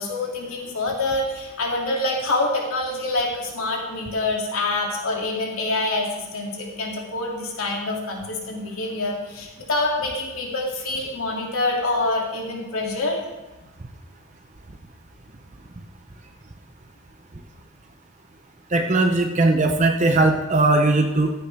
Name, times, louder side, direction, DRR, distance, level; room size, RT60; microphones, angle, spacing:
voice 1, 0.0-13.2, left 2 dB, 85° left, -1 dB, 2.6 m, -26 dB
voice 2, 18.7-21.3, right 2 dB, 35° right, 4 dB, 0.7 m, -19 dB
14.5 x 9.2 x 3.4 m, 1.1 s
head